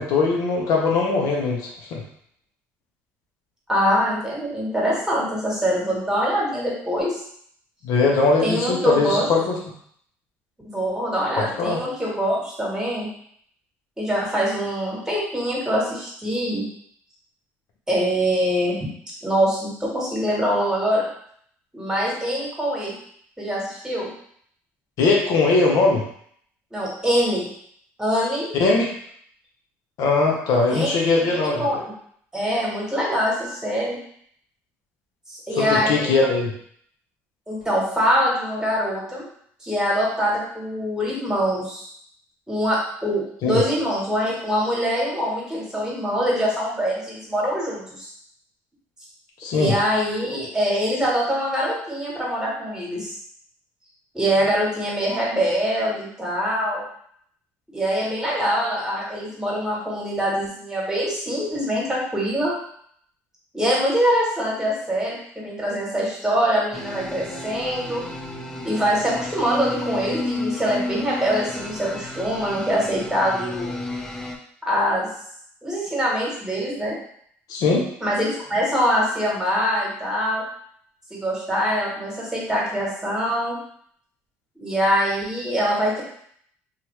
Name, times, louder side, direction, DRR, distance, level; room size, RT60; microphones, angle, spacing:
voice 1, 0.0-2.0 7.8-9.6 11.4-11.8 25.0-26.0 28.5-28.9 30.0-31.7 35.6-36.5 43.4-43.6 49.4-49.7 77.5-77.8, left 3 dB, 70° left, -1 dB, 0.7 m, -20 dB
voice 2, 3.7-7.2 8.4-9.3 10.6-13.1 14.0-16.7 17.9-18.8 19.2-21.0 21.7-22.9 23.4-24.1 26.7-27.5 28.0-28.5 30.7-31.8 32.3-34.0 35.3-36.1 37.5-39.3 39.6-41.9 42.5-48.1 49.5-53.1 54.1-56.8 57.7-62.5 63.5-68.0 68.6-73.7 74.7-75.1 75.6-77.0 78.0-80.4 81.1-83.6 84.6-86.0, equal, 10° right, -5 dB, 1.5 m, -24 dB
sound 1, 66.7-74.4, left 2 dB, 5° left, 0.5 m, -32 dB
2.8 x 2.4 x 3.1 m, 0.64 s
supercardioid pair, 85°, 6 cm